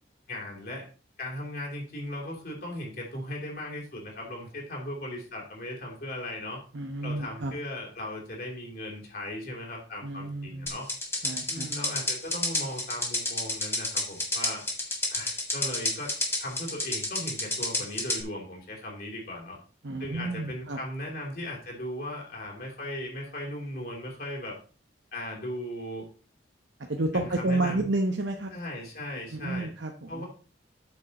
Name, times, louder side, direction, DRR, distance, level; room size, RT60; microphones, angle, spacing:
voice 1, 0.3-0.9 1.2-6.6 7.0-10.9 11.5-14.6 15.1-16.1 16.4-19.6 20.0-24.5 25.1-26.1 27.1-27.9 28.5-29.7 30.1-30.3, left 1 dB, 50° left, -2 dB, 3.4 m, -37 dB
voice 2, 6.7-7.5 10.0-10.7 11.2-11.7 19.8-20.8 26.9-28.5 29.3-30.2, right 2 dB, 80° right, 2 dB, 1.0 m, -30 dB
sound 1, 10.7-18.2, left 2 dB, 15° left, 1.9 m, -29 dB
8.3 x 6.7 x 4.2 m, 0.38 s
head